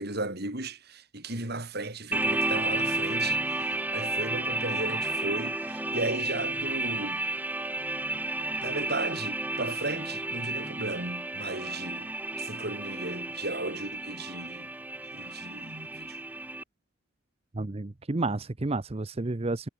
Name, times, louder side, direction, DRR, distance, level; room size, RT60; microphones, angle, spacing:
voice 1, 0.0-7.2 8.6-14.7 15.1-16.2, right 2 dB, 50° right, 5.7 m, -35 dB
sound 1, 2.1-16.6, right 2 dB, 10° right, 1.6 m, -32 dB
voice 2, 17.6-19.7, right 2 dB, 30° right, 0.7 m, -31 dB
head